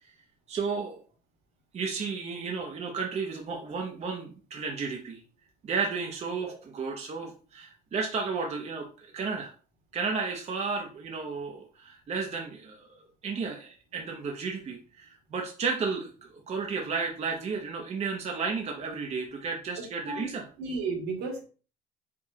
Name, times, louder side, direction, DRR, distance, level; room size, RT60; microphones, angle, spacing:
voice 1, 0.5-1.0 1.7-5.2 5.6-9.5 9.9-13.0 13.2-20.4, right 5 dB, 35° right, 1 dB, 0.9 m, -33 dB
voice 2, 20.6-21.4, right 4 dB, 75° right, 1 dB, 1.9 m, -33 dB
5.0 x 3.5 x 2.8 m, 0.37 s
supercardioid pair, 95°, 18 cm